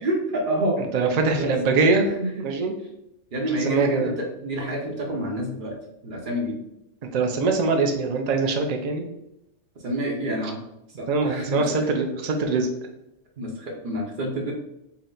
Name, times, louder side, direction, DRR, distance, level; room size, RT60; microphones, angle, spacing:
voice 1, 0.0-0.8 1.3-1.5 2.1-2.3 3.3-5.8 6.0-6.5 9.8-10.6 11.0-11.9 13.4-14.5, right 1 dB, 45° right, 0 dB, 0.9 m, -28 dB
voice 2, 0.9-2.1 2.4-2.7 3.6-4.1 7.1-9.0 11.1-12.7, right 4 dB, 85° right, 4 dB, 0.3 m, -22 dB
4.3 x 2.1 x 3.8 m, 0.85 s
omnidirectional pair, 1.3 m